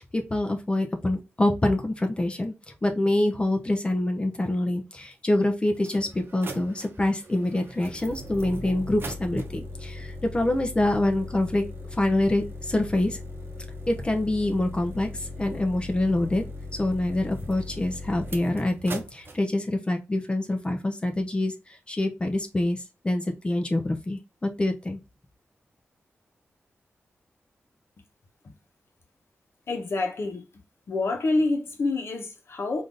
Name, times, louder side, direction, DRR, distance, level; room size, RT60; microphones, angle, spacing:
voice 1, 0.1-2.5 2.8-11.6 11.9-13.2 13.9-16.4 16.7-25.0, left 1 dB, 25° left, 0.5 m, -26 dB
sound 1, 5.1-5.2 5.7-19.4, left 1 dB, 55° right, 0.7 m, -39 dB
voice 2, 29.7-30.4 30.9-32.8, left 2 dB, 65° left, 0.9 m, -27 dB
3.6 x 2.6 x 2.5 m
wide cardioid pair, 90°, 5 cm